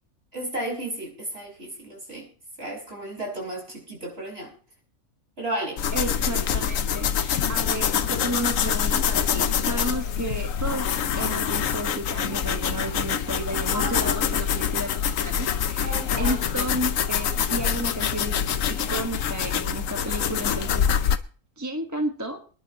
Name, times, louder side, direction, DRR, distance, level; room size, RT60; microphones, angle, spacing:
voice 1, 0.3-2.3 2.6-4.5 5.4-5.8 6.5-6.7 13.7-14.2 15.8-16.4, right 1 dB, 45° right, -1 dB, 6.0 m, -33 dB
sound 1, 5.8-21.2, left 8 dB, 70° left, 1.1 m, -25 dB
voice 2, 5.9-10.9 11.2-14.9 15.2-18.4 18.7-21.2 21.6-22.4, right 1 dB, 15° right, 3 dB, 1.3 m, -32 dB
26.0 x 11.0 x 3.0 m, 0.40 s
omnidirectional pair, 1.4 m